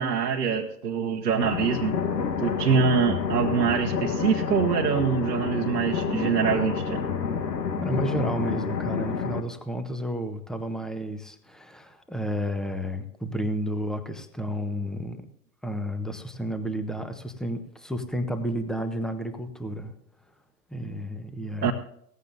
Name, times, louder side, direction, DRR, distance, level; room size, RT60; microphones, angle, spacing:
voice 1, 0.0-2.0 2.4-7.0 21.6-21.7, right 6 dB, 80° right, 1 dB, 1.3 m, -24 dB
sound 1, 1.4-9.4, left 6 dB, 80° left, 1.3 m, -29 dB
voice 2, 7.8-15.3 15.6-19.9 20.7-21.7, equal, ahead, 9 dB, 1.1 m, -31 dB
18.0 x 15.0 x 2.6 m, 0.71 s
figure-of-eight pair, 100°, 49 cm